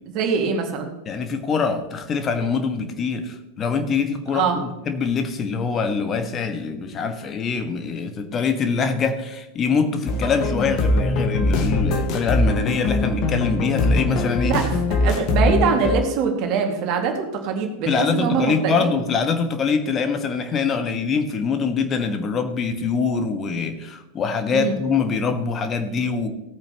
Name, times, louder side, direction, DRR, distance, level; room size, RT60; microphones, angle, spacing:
voice 1, 0.1-0.9 4.3-4.6 14.4-14.6 15.0-18.9 24.5-24.7, right 6 dB, 40° right, 3 dB, 2.1 m, -23 dB
voice 2, 1.0-14.6 15.0-15.1 17.9-26.3, left 5 dB, 25° left, 8 dB, 1.4 m, -24 dB
sound 1, 10.1-16.0, left 2 dB, 40° left, 1.5 m, -22 dB
18.0 x 8.8 x 3.0 m, 1.0 s
figure-of-eight pair, 90°, 0 cm